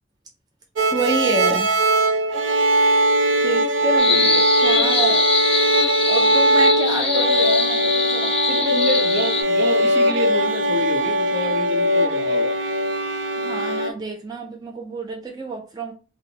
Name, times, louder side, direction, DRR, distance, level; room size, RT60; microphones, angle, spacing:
sound 1, 0.8-13.9, right 1 dB, 90° right, 0.6 m, -20 dB
voice 1, 0.9-1.7 3.4-5.3 6.1-8.8 13.4-15.9, right 3 dB, 20° right, 0.4 m, -28 dB
sound 2, 4.0-9.4, left 5 dB, 30° left, 0.6 m, -23 dB
voice 2, 8.5-12.6, equal, 60° right, 0.8 m, -28 dB
4.3 x 2.1 x 2.8 m
head